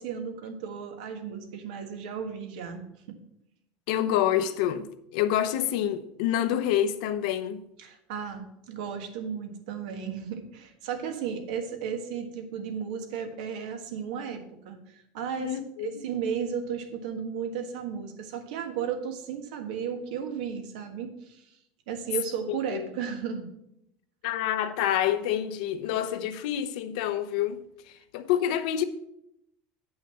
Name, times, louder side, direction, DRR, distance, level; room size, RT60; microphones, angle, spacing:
voice 1, 0.0-2.8 3.1-3.2 7.8-15.5 15.8-21.4 21.9-23.5, right 7 dB, 90° right, 1.5 m, -34 dB
voice 2, 3.9-7.7 15.4-16.0 22.5-22.9 24.2-28.8, left 11 dB, 70° left, 0.7 m, -28 dB
9.0 x 5.7 x 5.7 m
cardioid pair, 175°, 4 cm